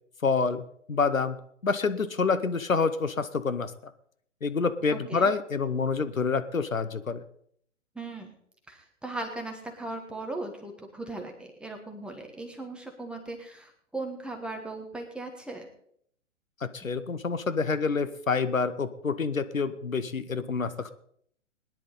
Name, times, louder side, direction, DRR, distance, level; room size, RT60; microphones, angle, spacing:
voice 1, 0.2-1.4 1.6-3.7 4.4-7.2 16.6-20.9, left 4 dB, 85° left, 12 dB, 1.1 m, -27 dB
voice 2, 4.9-5.3 7.9-8.4 8.7-15.7, right 2 dB, ahead, 3 dB, 1.3 m, -38 dB
20.0 x 10.5 x 4.1 m, 0.67 s
figure-of-eight pair, 125°, 39 cm